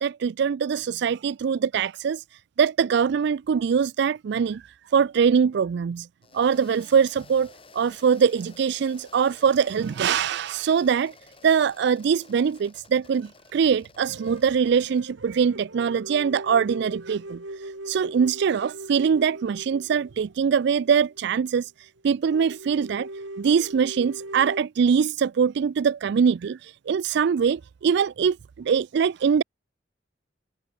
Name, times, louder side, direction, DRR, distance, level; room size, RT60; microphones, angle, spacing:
voice 1, 0.0-2.2 2.6-4.6 4.9-6.1 6.3-11.1 11.4-17.4 17.9-21.7 22.0-23.1 23.4-29.4, right 6 dB, 60° right, 0.3 m, -23 dB
sound 1, 6.2-15.0, left 3 dB, 30° left, 3.5 m, -52 dB
sound 2, 14.0-21.3 21.6-21.7 22.0-22.1 22.3-24.6, right 1 dB, 85° right, 5.1 m, -40 dB
head